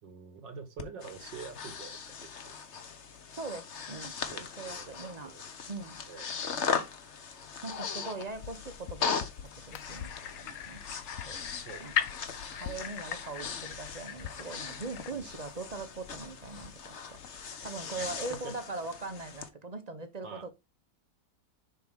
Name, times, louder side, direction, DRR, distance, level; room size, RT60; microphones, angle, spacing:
voice 1, 0.0-2.6 4.3-4.9 5.2-5.4 6.1-6.3 11.7-11.9 15.1-15.3 18.0-18.1 18.4-18.5 20.2-20.5, right 5 dB, 85° right, 2.3 m, -46 dB
Breathing, 0.8-19.5, left 6 dB, 45° left, 1.2 m, -39 dB
voice 2, 3.3-4.2 4.6-5.3 5.7-6.0 7.6-9.3 9.6-10.1 10.4-10.8 11.2-11.4 11.8-11.9 12.5-17.2 17.6-20.5, right 3 dB, 30° right, 0.8 m, -41 dB
sound 1, 8.3-17.5, left 9 dB, 65° left, 0.9 m, -49 dB
sound 2, 9.7-15.1, left 9 dB, 85° left, 1.6 m, -39 dB
10.5 x 4.6 x 3.6 m
omnidirectional pair, 1.9 m